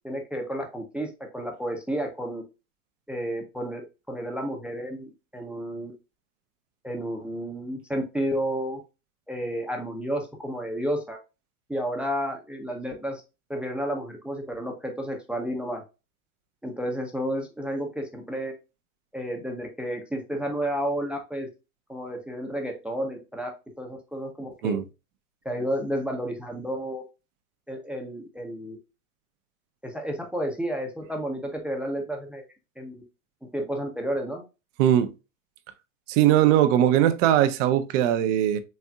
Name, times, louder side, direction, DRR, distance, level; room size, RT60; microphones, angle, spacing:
voice 1, 0.0-2.4 3.1-5.9 6.8-8.8 9.3-11.2 11.7-13.2 13.5-15.8 16.6-18.5 19.1-21.5 21.9-23.5 23.8-24.8 25.4-27.0 27.7-28.8 29.8-32.4 32.8-33.0 33.4-34.4, equal, 5° right, 0.7 m, -31 dB
voice 2, 34.8-35.1 36.1-38.6, right 11 dB, 55° right, 0.8 m, -20 dB
4.3 x 3.4 x 2.3 m
hypercardioid pair, 110°, 44 cm